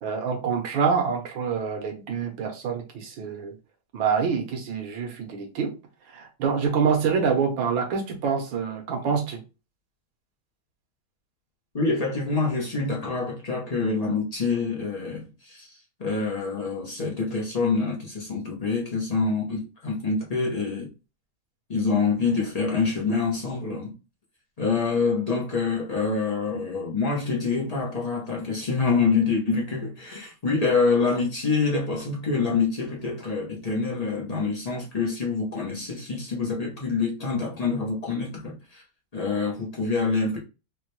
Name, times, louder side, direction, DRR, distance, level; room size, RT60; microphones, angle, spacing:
voice 1, 0.0-3.5 3.9-5.7 6.1-9.4, right 6 dB, 80° right, 1.7 m, -26 dB
voice 2, 11.7-20.9 21.7-23.9 24.6-38.8 39.1-40.4, left 4 dB, 85° left, 0.3 m, -26 dB
4.6 x 2.2 x 3.1 m
omnidirectional pair, 2.1 m